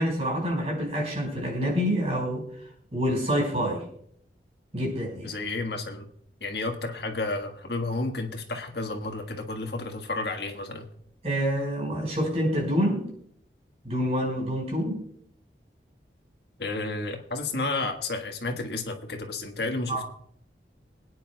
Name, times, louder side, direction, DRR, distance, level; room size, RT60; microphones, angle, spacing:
voice 1, 0.0-2.4 2.9-3.8 4.7-5.3 11.2-13.1 13.8-15.0 19.9-20.0, equal, 35° right, -1 dB, 4.9 m, -27 dB
voice 2, 5.2-6.1 6.4-10.9 16.6-20.0, left 2 dB, 75° left, 4 dB, 1.5 m, -31 dB
26.0 x 9.5 x 2.3 m, 0.68 s
head